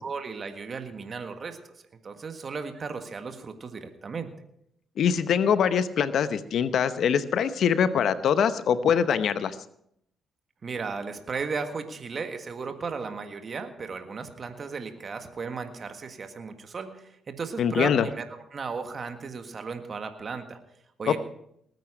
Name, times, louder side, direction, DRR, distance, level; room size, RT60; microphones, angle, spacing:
voice 1, 0.0-1.7 2.0-4.3 10.6-20.6 21.0-21.2, right 5 dB, 50° right, 6 dB, 1.7 m, -35 dB
voice 2, 5.0-9.6 17.6-18.1 21.1-21.2, left 7 dB, 70° left, 13 dB, 0.9 m, -23 dB
19.5 x 9.2 x 5.1 m, 0.73 s
supercardioid pair, 50°, 0 cm